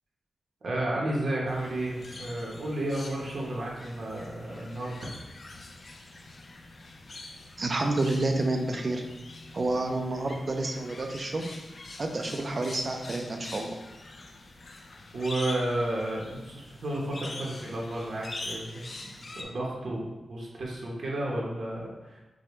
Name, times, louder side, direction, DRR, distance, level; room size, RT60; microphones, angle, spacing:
voice 1, 0.6-5.1 15.1-18.9 19.4-22.2, right 1 dB, 55° right, -4 dB, 0.9 m, -32 dB
sound 1, 1.5-19.4, left 2 dB, 40° left, 0.4 m, -44 dB
voice 2, 7.6-9.0 9.5-11.4 12.0-13.7, right 2 dB, 35° right, 4 dB, 0.4 m, -29 dB
4.9 x 2.2 x 3.0 m, 1.1 s
wide cardioid pair, 155°, 0 cm